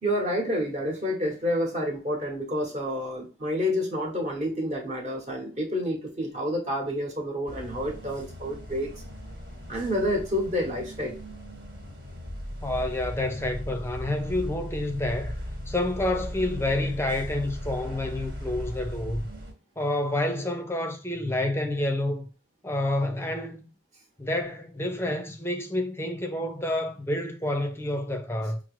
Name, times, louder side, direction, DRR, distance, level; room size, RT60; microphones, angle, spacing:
voice 1, 0.0-8.9 9.7-11.2, equal, 35° right, 1.2 m, -29 dB
sound 1, 7.5-19.5, equal, 65° right, 1.5 m, -38 dB
voice 2, 12.6-15.3 15.7-19.3 19.8-22.3 22.6-23.7 24.2-28.6, left 1 dB, 15° left, 0.5 m, -29 dB
5.9 x 2.0 x 3.1 m
head